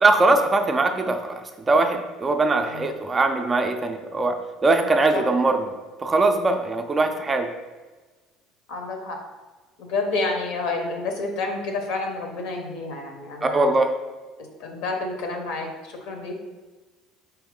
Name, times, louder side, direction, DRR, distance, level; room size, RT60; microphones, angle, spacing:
voice 1, 0.0-5.7 6.0-7.5 13.4-13.9, right 2 dB, 20° right, 5 dB, 0.4 m, -21 dB
voice 2, 8.7-9.2 9.8-13.8 14.4-16.3, left 3 dB, 70° left, 3 dB, 0.9 m, -29 dB
4.6 x 3.0 x 3.7 m, 1.3 s
cardioid pair, 140°, 0 cm